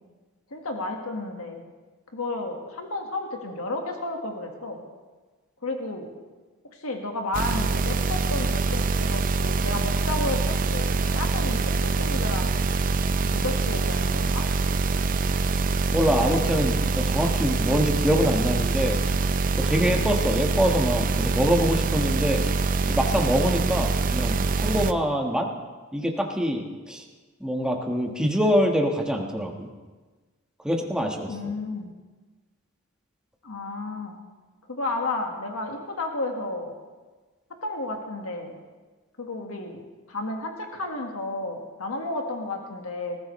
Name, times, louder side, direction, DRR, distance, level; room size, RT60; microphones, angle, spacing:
voice 1, 0.5-1.6 2.1-4.8 5.6-6.1 6.8-12.6 13.3-14.5 31.3-31.9 33.4-34.2 34.7-36.7 37.6-38.6 39.2-39.8 40.1-43.2, left 2 dB, 90° left, 3 dB, 1.6 m, -32 dB
sound 1, 7.3-24.9, right 4 dB, 40° right, 0.5 m, -24 dB
voice 2, 15.9-19.0 19.6-22.4 22.9-25.5 25.9-27.0 27.4-29.7 30.6-31.3, equal, 5° right, 1 dB, 1.4 m, -24 dB
19.5 x 15.0 x 3.2 m, 1.3 s
head